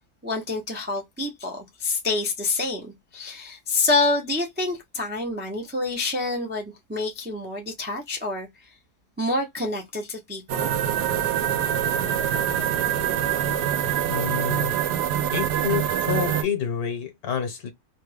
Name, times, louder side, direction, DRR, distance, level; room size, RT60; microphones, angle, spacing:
voice 1, 0.2-8.7 9.2-10.7 11.2-11.3, left 3 dB, 15° right, 0.4 m, -27 dB
sound 1, 10.5-16.4, right 10 dB, 90° right, 1.2 m, -24 dB
voice 2, 14.1-14.7 15.3-17.7, left 7 dB, 70° left, 1.5 m, -28 dB
3.2 x 2.3 x 3.2 m
omnidirectional pair, 1.7 m